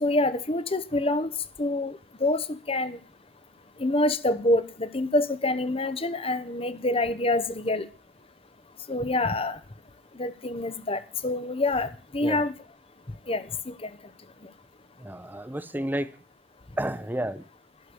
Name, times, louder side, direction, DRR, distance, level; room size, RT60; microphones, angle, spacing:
voice 1, 0.0-1.3 1.6-3.0 3.8-7.9 8.9-9.6 10.2-12.5 13.3-13.9, left 2 dB, 30° left, 0.9 m, -26 dB
voice 2, 15.0-16.1 16.8-17.4, right 1 dB, 10° right, 0.7 m, -31 dB
13.0 x 6.8 x 9.8 m
head